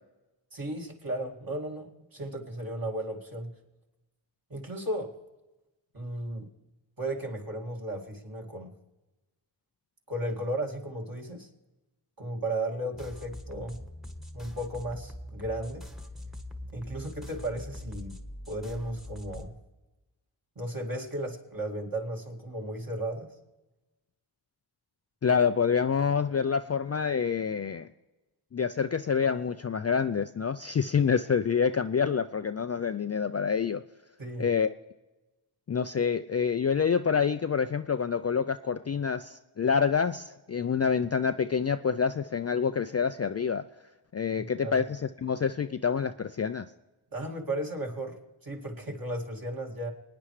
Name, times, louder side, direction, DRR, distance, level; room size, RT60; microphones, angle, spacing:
voice 1, 0.5-3.5 4.5-5.1 5.9-6.5 7.0-8.7 10.1-11.5 12.2-13.8 14.3-15.8 16.7-18.1 18.5-19.5 20.6-23.3 34.2-34.5 44.4-44.8 47.1-49.9, right 1 dB, 45° right, 0 dB, 2.3 m, -35 dB
sound 1, 12.9-19.5, left 1 dB, ahead, 1.2 m, -43 dB
voice 2, 25.2-27.9 28.5-33.8 34.4-34.7 35.7-43.6 44.1-46.6, left 6 dB, 35° left, 10 dB, 0.4 m, -27 dB
25.5 x 9.6 x 3.2 m, 1.1 s
cardioid pair, 55°, 49 cm